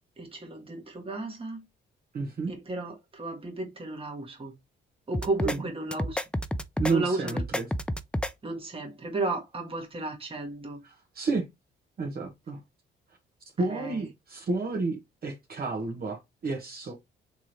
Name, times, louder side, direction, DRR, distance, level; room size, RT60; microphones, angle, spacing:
voice 1, 0.2-1.6 2.5-4.5 5.1-6.2 6.9-7.4 8.4-10.8 13.7-14.0, right 2 dB, 25° right, 1.7 m, -34 dB
voice 2, 2.1-2.5 5.4-5.7 6.8-7.7 10.8-11.4 12.0-12.6 13.6-15.0 15.2-16.9, right 3 dB, 50° right, 1.5 m, -31 dB
sound 1, 5.1-5.6 5.9-6.9 7.3-8.3, equal, 5° left, 0.4 m, -30 dB
3.6 x 3.3 x 4.3 m
cardioid pair, 90°, 20 cm